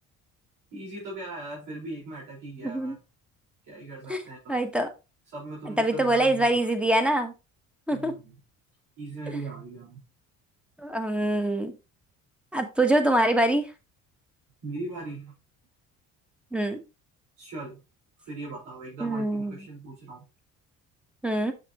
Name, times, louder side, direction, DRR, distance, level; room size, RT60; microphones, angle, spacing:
voice 1, 0.7-3.0 3.6-4.6 5.3-6.7 7.9-8.3 9.0-10.0 14.6-15.3 17.4-17.8 18.2-20.2, right 2 dB, 85° right, -6 dB, 4.8 m, -39 dB
voice 2, 2.6-2.9 4.1-4.2 4.5-4.9 5.8-7.3 7.9-8.1 10.8-11.7 12.5-13.7 16.5-16.8 19.0-19.6 21.2-21.5, right 1 dB, 5° right, 7 dB, 1.0 m, -24 dB
7.4 x 5.8 x 3.0 m, 0.28 s
cardioid pair, 135°, 32 cm